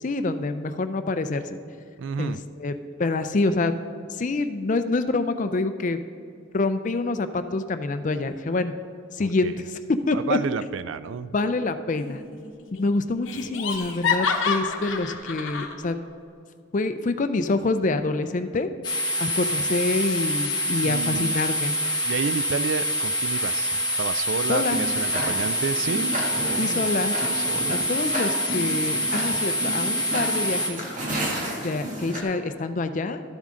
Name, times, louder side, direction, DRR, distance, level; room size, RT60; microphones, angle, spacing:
voice 1, 0.0-1.4 2.2-2.7 3.0-3.7 4.1-6.0 6.5-8.7 9.1-9.5 10.1-10.4 11.3-12.2 12.8-16.0 16.7-18.7 19.2-21.7 24.5-24.8 26.6-27.2 27.7-30.8 31.6-33.2, left 3 dB, 40° left, 10 dB, 0.4 m, -26 dB
voice 2, 2.0-2.4 9.2-9.6 10.1-11.3 20.8-21.4 22.0-27.9, right 6 dB, 70° right, 15 dB, 0.3 m, -31 dB
Laughter, 12.0-12.5 12.8-12.9 13.3-15.7, left 6 dB, 75° left, 0.8 m, -28 dB
sound 1, 18.8-30.7, left 1 dB, 25° left, 1.3 m, -26 dB
Tick-tock, 24.4-32.2, right 1 dB, 40° right, 1.5 m, -32 dB
13.0 x 7.2 x 3.8 m, 2.3 s
head